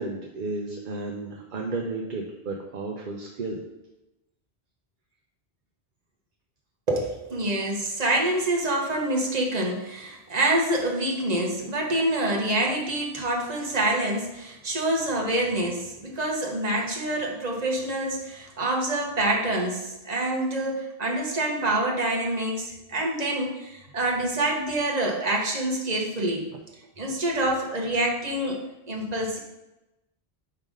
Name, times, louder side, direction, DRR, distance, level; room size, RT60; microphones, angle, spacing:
voice 1, 0.0-3.6, right 3 dB, 55° right, 1 dB, 0.8 m, -33 dB
voice 2, 6.9-26.5 27.0-29.4, right 1 dB, 40° right, -1 dB, 1.2 m, -26 dB
5.5 x 3.7 x 5.2 m, 0.96 s
omnidirectional pair, 1.1 m